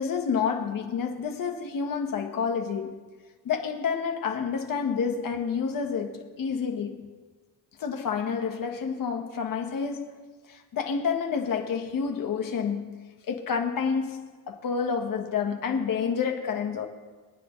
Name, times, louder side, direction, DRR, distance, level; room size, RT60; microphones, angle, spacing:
voice 1, 0.0-3.0 3.4-7.1 7.8-10.2 10.5-16.9, left 6 dB, 55° left, 1.6 m, -29 dB
26.5 x 9.5 x 3.3 m
wide cardioid pair, 175°, 40 cm